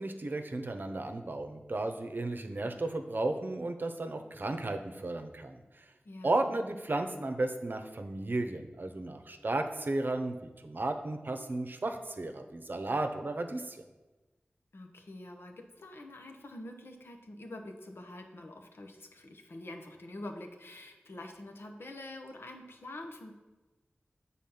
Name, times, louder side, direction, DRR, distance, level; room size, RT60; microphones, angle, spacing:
voice 1, 0.0-5.8 6.2-13.8, right 2 dB, 55° right, 6 dB, 0.7 m, -34 dB
voice 2, 6.0-6.6 14.7-23.3, left 1 dB, 80° left, 3 dB, 0.9 m, -46 dB
7.6 x 4.1 x 5.6 m, 1.1 s
wide cardioid pair, 60°, 4 cm